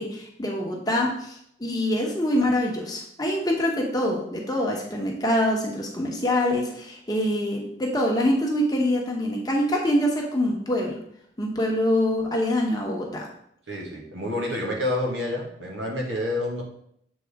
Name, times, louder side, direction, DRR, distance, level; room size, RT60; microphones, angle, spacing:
voice 1, 0.0-11.0 11.4-13.3, left 1 dB, 20° left, -1 dB, 1.0 m, -25 dB
voice 2, 13.7-16.6, left 1 dB, 85° right, -1 dB, 1.6 m, -28 dB
7.3 x 4.1 x 3.5 m, 0.70 s
head